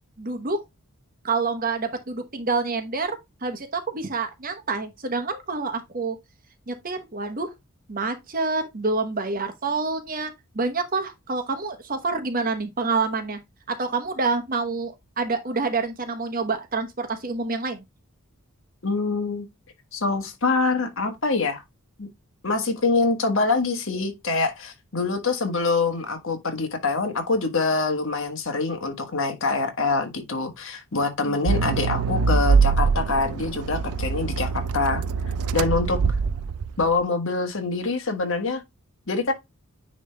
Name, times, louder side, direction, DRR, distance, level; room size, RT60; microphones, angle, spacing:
voice 1, 0.2-0.6 1.2-6.2 6.7-7.5 7.9-13.4 13.7-17.8 31.2-31.4, right 4 dB, 40° right, 1.1 m, -27 dB
voice 2, 18.8-19.4 19.9-21.6 22.0-22.1 22.4-35.0 35.5-36.0 36.8-38.6 39.1-39.3, left 3 dB, 60° left, 1.5 m, -25 dB
Accelerating revving vroom, 31.5-36.9, right 5 dB, 85° right, 0.4 m, -23 dB
9.6 x 3.3 x 3.4 m
head